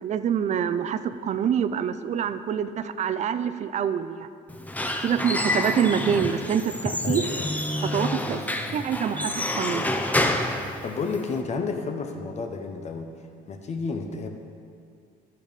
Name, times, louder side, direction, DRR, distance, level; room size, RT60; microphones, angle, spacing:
voice 1, 0.0-4.3 5.0-7.2 7.8-8.4 8.7-9.9, right 8 dB, 45° right, 12 dB, 0.4 m, -26 dB
Squeak / Wood, 4.5-11.4, left 1 dB, 10° left, 0.6 m, -28 dB
voice 2, 7.0-7.6 10.8-13.1 13.5-14.3, left 4 dB, 40° left, 5 dB, 0.9 m, -31 dB
11.5 x 6.8 x 4.1 m, 2.2 s
cardioid pair, 110°, 17 cm